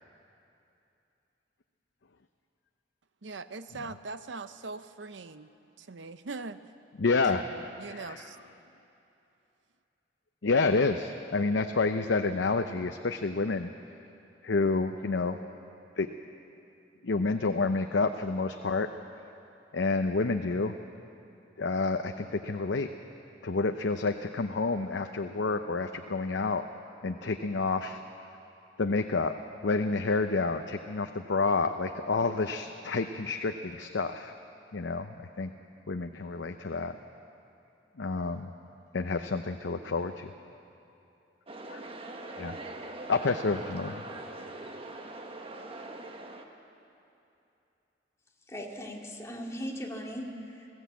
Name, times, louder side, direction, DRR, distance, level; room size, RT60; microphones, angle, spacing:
voice 1, 3.2-5.5 5.8-6.6 7.3-8.4, right 3 dB, 80° right, 11 dB, 0.8 m, -41 dB
voice 2, 7.0-7.4 7.9-8.3 10.4-13.7 14.4-15.4 16.0-16.1 17.0-18.9 19.7-20.7 21.6-22.9 23.4-26.6 27.0-28.0 28.8-29.4 29.6-34.3 34.7-35.5 35.9-37.0 38.0-38.5 38.9-40.3 41.7-41.8 42.4-42.6 43.1-44.0, left 3 dB, 80° left, 6 dB, 0.7 m, -29 dB
sound 1, 41.5-46.5, right 2 dB, 30° right, 1.3 m, -42 dB
voice 3, 48.5-50.7, equal, 15° left, -1 dB, 2.2 m, -38 dB
20.5 x 15.5 x 8.4 m, 2.8 s
head